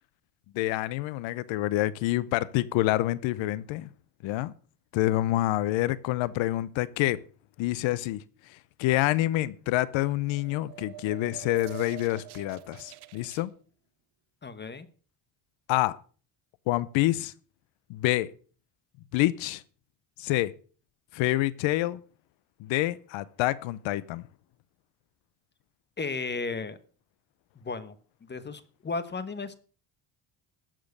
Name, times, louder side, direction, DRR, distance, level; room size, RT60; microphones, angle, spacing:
voice 1, 0.5-3.9 4.2-4.5 4.9-7.2 7.6-8.2 8.8-13.5 15.7-16.0 16.7-17.3 17.9-18.3 19.1-19.6 20.2-20.5 21.1-22.0 22.6-24.2, left 16 dB, 90° left, 0.8 m, -27 dB
sound 1, 10.1-13.4, right 15 dB, 60° right, 0.8 m, -45 dB
voice 2, 14.4-14.9 26.0-26.8 27.6-27.9 28.3-29.5, left 4 dB, 25° left, 1.1 m, -34 dB
13.5 x 7.6 x 6.6 m
cardioid pair, 120°, 44 cm